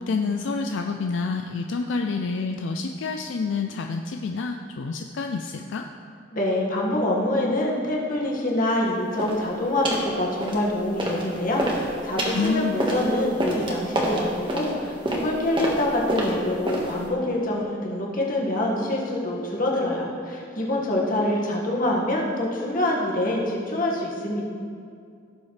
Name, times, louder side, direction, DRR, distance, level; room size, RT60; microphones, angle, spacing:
voice 1, 0.0-5.8 12.3-12.8, left 4 dB, 75° left, 4 dB, 0.4 m, -28 dB
voice 2, 6.3-24.4, left 1 dB, 45° left, -3 dB, 1.7 m, -25 dB
sound 1, 9.2-9.4 9.8-10.1 10.4-11.2 11.5-17.1, right 1 dB, 25° right, 1.5 m, -27 dB
16.5 x 7.1 x 3.3 m, 2.4 s
head